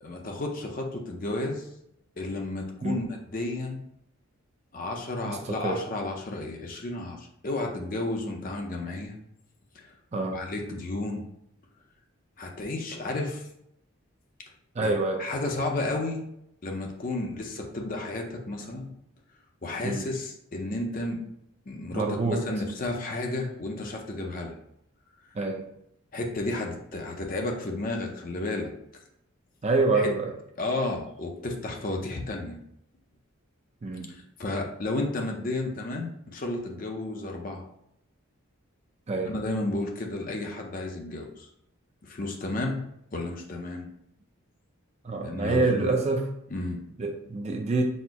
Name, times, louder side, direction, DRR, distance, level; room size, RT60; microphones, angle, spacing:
voice 1, 0.0-1.7 2.2-3.8 4.7-9.2 9.7-9.9 10.3-11.3 12.4-13.4 14.8-16.2 16.6-18.9 19.6-21.2 21.7-24.6 26.1-28.7 29.9-30.1 30.6-32.6 34.1-37.7 39.3-41.5 42.0-42.8 43.1-43.9 45.2-45.9 46.5-46.8, left 2 dB, 40° left, 2 dB, 0.6 m, -32 dB
voice 2, 5.3-5.8 10.1-10.4 14.8-15.3 19.8-20.0 21.9-22.4 25.3-25.7 29.6-30.3 33.8-34.1 39.1-39.3 45.0-46.3 47.0-47.8, right 3 dB, 30° right, 3 dB, 0.4 m, -26 dB
4.2 x 2.0 x 4.5 m, 0.76 s
head